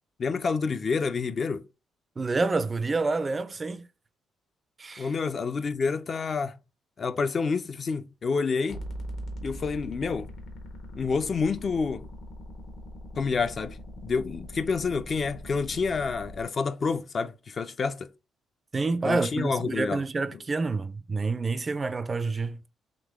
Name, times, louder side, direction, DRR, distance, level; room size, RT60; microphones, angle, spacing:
voice 1, 0.2-1.7 5.0-6.6 7.0-8.8 9.4-10.3 11.0-12.1 13.2-18.1 19.0-20.0 20.3-20.4, left 5 dB, 45° left, 0.4 m, -28 dB
voice 2, 2.2-3.9 4.8-5.1 18.7-22.6, right 3 dB, 30° right, 0.4 m, -28 dB
sound 1, 8.7-16.4, equal, 70° left, 1.2 m, -41 dB
3.7 x 2.9 x 3.4 m
cardioid pair, 90°, 0 cm